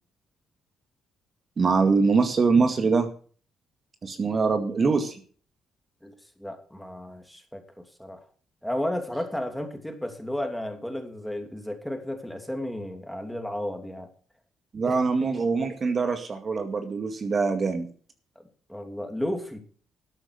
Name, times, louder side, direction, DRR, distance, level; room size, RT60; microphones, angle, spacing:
voice 1, 1.6-3.1 4.0-5.2 14.7-17.9, right 4 dB, 40° right, 7 dB, 2.0 m, -23 dB
voice 2, 6.0-8.2 8.6-14.1 14.8-15.0 15.5-15.6 18.7-19.6, left 1 dB, 5° left, 5 dB, 2.9 m, -33 dB
13.0 x 8.4 x 6.6 m, 0.43 s
cardioid pair, 90°, 0 cm